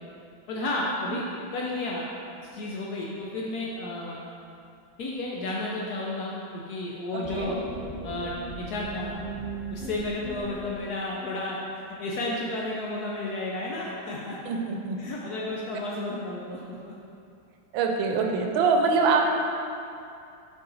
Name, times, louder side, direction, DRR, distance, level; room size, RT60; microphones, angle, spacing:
voice 1, 0.5-1.2 1.5-2.1 2.5-4.2 5.0-7.6 8.0-9.2 9.7-14.5 15.0-16.9, left 2 dB, 70° left, -3 dB, 0.9 m, -32 dB
voice 2, 7.1-7.5 14.4-15.0 17.7-19.2, right 4 dB, 80° right, 2 dB, 1.3 m, -24 dB
sound 1, 7.2-10.8, right 3 dB, 15° left, 0.3 m, -37 dB
5.6 x 4.8 x 3.9 m, 2.6 s
omnidirectional pair, 2.2 m